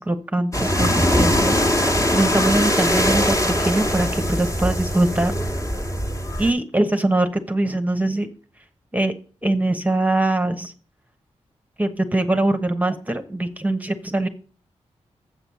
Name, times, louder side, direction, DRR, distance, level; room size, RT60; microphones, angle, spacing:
voice 1, 0.0-5.3 6.4-8.3 8.9-9.1 9.4-10.7 11.8-14.3, right 2 dB, 10° right, 8 dB, 1.1 m, -22 dB
sound 1, 0.5-6.5, equal, 25° left, 1.8 m, -21 dB
7.7 x 5.9 x 6.9 m, 0.39 s
cardioid pair, 50°, 12 cm